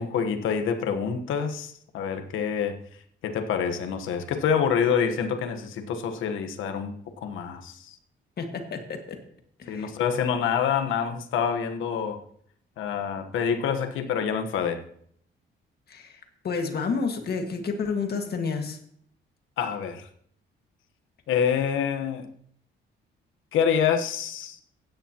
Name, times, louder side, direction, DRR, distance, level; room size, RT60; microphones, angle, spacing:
voice 1, 0.0-2.8 3.2-8.0 9.7-12.2 12.8-14.8 19.6-20.1 21.3-22.3 23.5-24.6, left 7 dB, 85° left, 7 dB, 1.3 m, -27 dB
voice 2, 8.4-9.2 9.6-9.9 15.9-18.8, left 5 dB, 55° left, 4 dB, 1.9 m, -30 dB
16.0 x 10.0 x 3.0 m, 0.64 s
cardioid pair, 90°, 20 cm